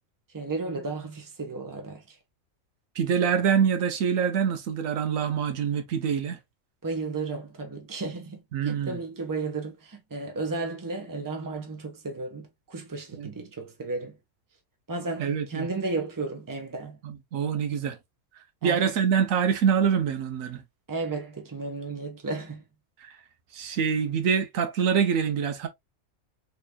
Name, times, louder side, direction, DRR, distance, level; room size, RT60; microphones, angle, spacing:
voice 1, 0.3-2.2 6.8-14.2 14.9-17.0 18.6-18.8 20.9-22.6, right 3 dB, 15° right, 0.8 m, -34 dB
voice 2, 3.0-6.4 8.5-9.0 13.1-13.3 15.2-15.7 17.0-18.0 18.6-20.6 23.0-23.2 23.5-25.7, right 7 dB, 80° right, 1.1 m, -25 dB
4.1 x 3.3 x 2.2 m
omnidirectional pair, 1.4 m